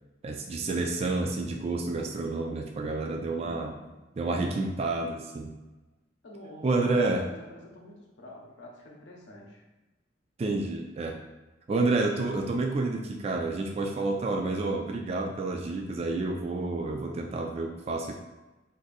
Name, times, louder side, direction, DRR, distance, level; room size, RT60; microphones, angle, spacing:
voice 1, 0.2-3.7 4.2-5.5 6.6-7.2 10.4-11.2 11.7-18.1, right 3 dB, 35° right, 2 dB, 0.3 m, -29 dB
voice 2, 3.4-4.0 6.2-9.6, left 1 dB, 75° left, -1 dB, 0.7 m, -46 dB
2.6 x 2.5 x 3.9 m, 1.1 s
head